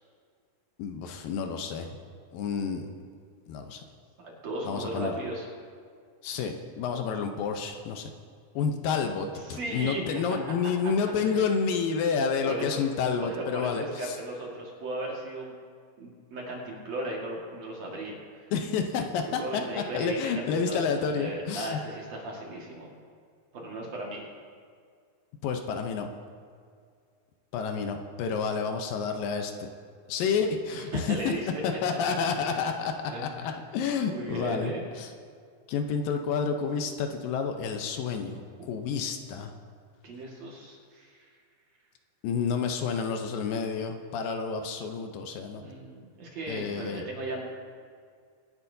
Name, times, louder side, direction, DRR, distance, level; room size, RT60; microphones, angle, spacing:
voice 1, 0.8-1.9 2.3-2.9 3.5-3.8 4.7-5.2 6.2-8.1 8.6-14.2 18.5-21.8 25.4-26.1 27.5-29.7 30.1-31.3 31.6-34.7 35.0-35.1 35.7-39.5 42.2-45.6 46.5-47.0, left 6 dB, 80° left, 5 dB, 2.5 m, -29 dB
voice 2, 4.2-5.5 9.3-10.4 11.2-11.8 12.4-12.8 13.2-15.5 16.0-18.5 19.3-22.9 23.5-24.2 30.7-31.5 32.5-32.6 33.1-33.6 34.1-34.8 38.6-38.8 40.0-41.3 45.6-47.4, right 1 dB, 55° right, -2 dB, 2.8 m, -37 dB
23.5 x 10.5 x 2.7 m, 2.1 s
omnidirectional pair, 4.1 m